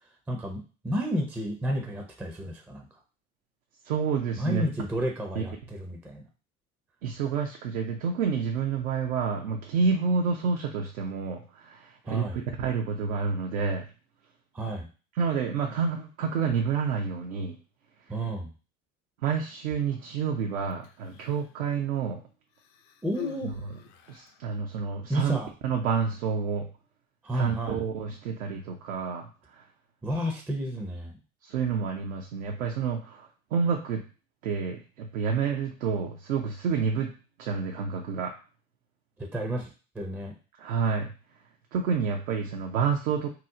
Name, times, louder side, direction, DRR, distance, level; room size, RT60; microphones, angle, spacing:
voice 1, 0.3-2.8 4.4-6.2 12.0-12.4 14.5-14.9 18.1-18.5 23.0-23.5 25.1-25.5 27.2-27.8 30.0-31.2 39.2-39.7 40.0-40.3, equal, 5° right, 2 dB, 0.4 m, -31 dB
voice 2, 3.8-4.7 5.4-5.5 7.0-13.9 15.1-17.6 19.2-22.2 23.4-23.8 24.1-25.4 25.6-26.7 27.3-29.6 31.4-34.0 34.4-37.1 37.4-38.3 40.6-41.1 41.7-43.3, right 5 dB, 75° right, 1 dB, 0.6 m, -29 dB
Human voice, 20.7-21.6 22.5-24.4 25.4-25.5, left 13 dB, 65° left, 0.6 m, -44 dB
2.9 x 2.0 x 3.6 m, 0.35 s
hypercardioid pair, 75°, 41 cm